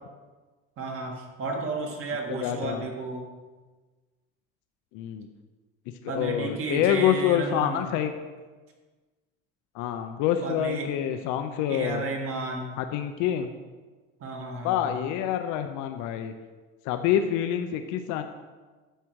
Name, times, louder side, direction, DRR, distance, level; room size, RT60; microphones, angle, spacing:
voice 1, 0.8-3.3 6.1-7.9 10.4-10.9 11.7-12.8 14.2-15.1, right 3 dB, 50° right, 1 dB, 1.9 m, -33 dB
voice 2, 2.4-2.8 4.9-5.3 6.0-8.1 9.7-12.0 12.8-13.5 14.6-16.3 16.8-18.2, left 10 dB, 85° left, 7 dB, 0.7 m, -26 dB
10.0 x 7.4 x 4.6 m, 1.3 s
cardioid pair, 155°, 30 cm